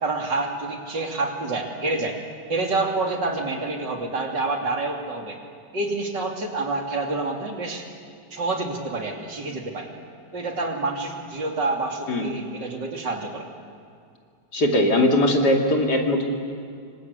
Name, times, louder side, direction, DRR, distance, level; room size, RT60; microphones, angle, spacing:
voice 1, 0.0-2.2 2.5-5.4 5.7-7.8 8.3-9.9 10.3-13.5, right 3 dB, 80° right, 2 dB, 3.4 m, -27 dB
voice 2, 14.5-16.2, left 1 dB, 65° left, 1 dB, 3.4 m, -20 dB
26.5 x 25.0 x 8.2 m, 2.3 s
omnidirectional pair, 1.9 m